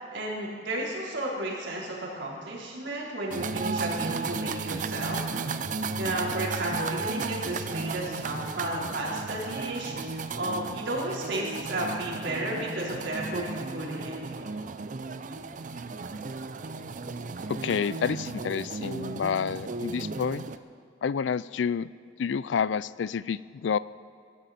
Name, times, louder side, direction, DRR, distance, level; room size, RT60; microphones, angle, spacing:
voice 1, 0.1-5.2 6.0-9.9 10.3-14.2, right 1 dB, 90° right, -4 dB, 4.0 m, -33 dB
sound 1, 3.3-20.6, right 4 dB, 45° right, 0.6 m, -34 dB
voice 2, 17.5-20.5 21.0-21.9 22.2-23.8, left 6 dB, 80° left, 19 dB, 0.4 m, -29 dB
23.0 x 13.0 x 4.3 m, 2.3 s
head